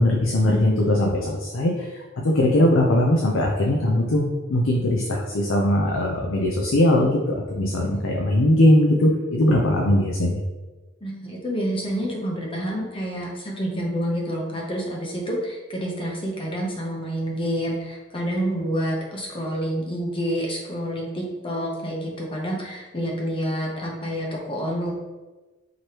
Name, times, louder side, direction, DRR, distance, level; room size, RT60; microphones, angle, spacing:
voice 1, 0.0-4.2 4.5-10.4, left 1 dB, 85° left, -1 dB, 0.6 m, -20 dB
voice 2, 11.0-24.9, equal, 25° left, -1 dB, 0.9 m, -28 dB
4.9 x 3.0 x 2.9 m, 1.2 s
head